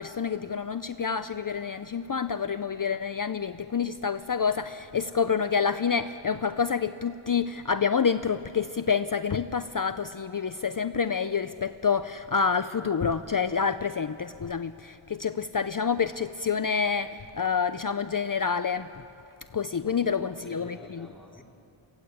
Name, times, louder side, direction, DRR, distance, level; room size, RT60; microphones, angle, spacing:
voice 1, 0.0-18.9 19.5-21.1, left 6 dB, 45° left, 11 dB, 0.5 m, -28 dB
voice 2, 19.8-21.4, left 1 dB, ahead, -4 dB, 2.6 m, -48 dB
23.5 x 15.5 x 8.5 m, 2.6 s
wide cardioid pair, 65°, 49 cm